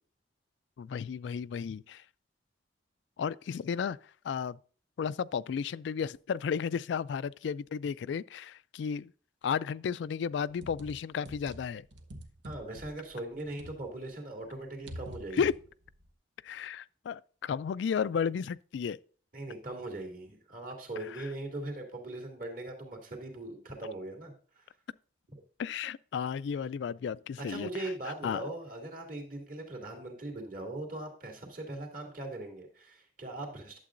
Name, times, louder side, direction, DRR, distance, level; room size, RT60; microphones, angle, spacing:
voice 1, 0.8-2.0 3.2-4.0 4.2-4.6 5.0-9.1 9.4-11.9 15.3-15.5 16.4-19.0 21.1-21.3 25.6-27.7 28.2-28.4, left 7 dB, 70° left, 0.3 m, -33 dB
sound 1, 10.5-14.1 14.4-16.1, right 1 dB, 80° right, 1.0 m, -46 dB
voice 2, 12.4-15.4 16.6-16.7 19.3-24.7 27.4-33.8, right 2 dB, 45° right, 2.5 m, -40 dB
11.5 x 7.5 x 2.5 m
head